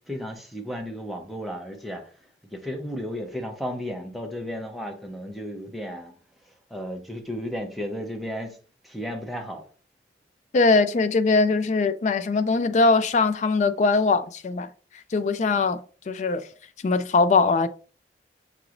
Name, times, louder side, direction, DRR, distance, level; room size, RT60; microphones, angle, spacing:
voice 1, 0.1-2.1 2.4-6.1 6.5-8.6 8.8-9.7, equal, ahead, 0.6 m, -34 dB
voice 2, 10.5-14.7 15.1-16.5 16.8-17.7, left 3 dB, 40° left, 0.3 m, -21 dB
5.9 x 2.9 x 2.5 m
head